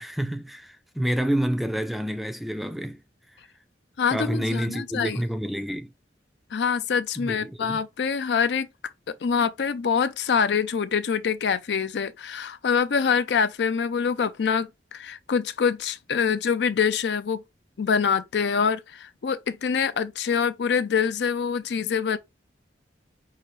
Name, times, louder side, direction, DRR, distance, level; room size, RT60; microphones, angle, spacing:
voice 1, 0.0-3.0 4.1-5.9 7.2-7.8, equal, ahead, 0.4 m, -28 dB
voice 2, 4.0-5.2 6.5-8.7 9.1-17.4 17.8-22.2, left 6 dB, 65° left, 0.4 m, -25 dB
5.6 x 2.5 x 3.1 m
head